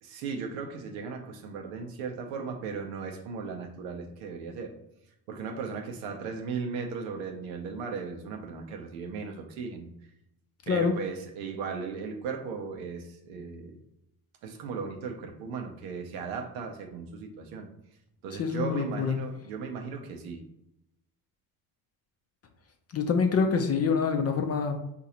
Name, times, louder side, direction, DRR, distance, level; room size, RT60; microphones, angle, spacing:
voice 1, 0.0-4.7 5.3-9.9 10.7-13.8 14.4-17.7 18.2-20.4, right 5 dB, 80° right, 3 dB, 0.7 m, -37 dB
voice 2, 18.4-19.2 22.9-24.8, left 5 dB, 35° left, 5 dB, 0.5 m, -26 dB
3.8 x 2.5 x 2.8 m, 0.84 s
hypercardioid pair, 55°, 46 cm